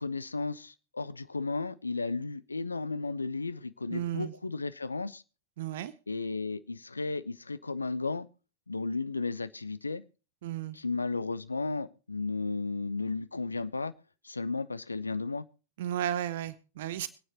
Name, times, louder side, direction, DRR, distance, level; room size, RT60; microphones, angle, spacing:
voice 1, 0.0-5.2 6.1-8.3 8.7-10.0 10.7-13.9 14.2-15.5, left 3 dB, 80° left, 16 dB, 0.7 m, -34 dB
voice 2, 3.9-4.3 5.6-5.9 10.4-10.8 15.8-17.1, right 11 dB, 55° right, 16 dB, 0.8 m, -33 dB
24.5 x 9.3 x 2.9 m, 0.34 s
figure-of-eight pair, 90°, 0 cm